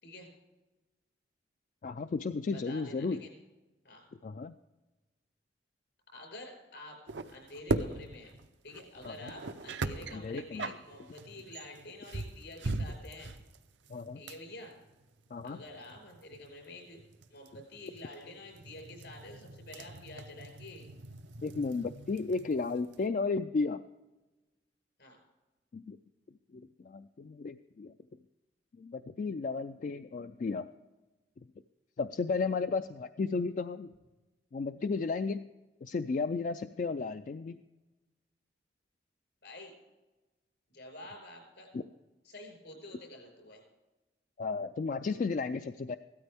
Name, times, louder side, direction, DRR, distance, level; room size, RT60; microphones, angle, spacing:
voice 1, 1.8-3.2 4.2-4.5 9.0-9.3 10.1-10.7 13.9-14.2 15.3-15.6 21.4-23.8 25.7-26.0 26.5-27.9 28.8-30.7 32.0-33.9 34.5-35.5 35.8-37.6 41.7-41.8 44.4-46.0, left 4 dB, 45° left, 10 dB, 0.3 m, -34 dB
voice 2, 2.5-3.3 3.8-4.0 6.1-7.0 7.3-8.3 8.6-13.3 14.1-14.8 15.4-17.0 17.3-20.9 25.0-25.2 39.4-39.7 40.7-41.7 42.3-43.6, left 1 dB, 75° left, 2 dB, 5.1 m, -48 dB
sound 1, 7.1-23.1, right 2 dB, 90° right, 0.7 m, -40 dB
16.0 x 13.0 x 3.5 m, 1.1 s
head